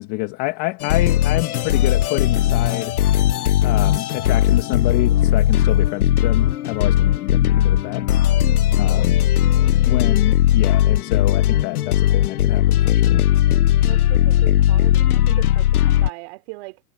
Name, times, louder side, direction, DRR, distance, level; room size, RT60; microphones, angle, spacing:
voice 1, 0.0-3.0 3.6-8.1 8.8-9.2 9.8-13.3, left 23 dB, 40° left, 2.0 m, -27 dB
sound 1, 0.8-16.1, left 12 dB, 90° left, 1.0 m, -18 dB
voice 2, 8.4-8.8 13.8-16.8, right 25 dB, 45° right, 3.8 m, -38 dB
hypercardioid pair, 145°, 43 cm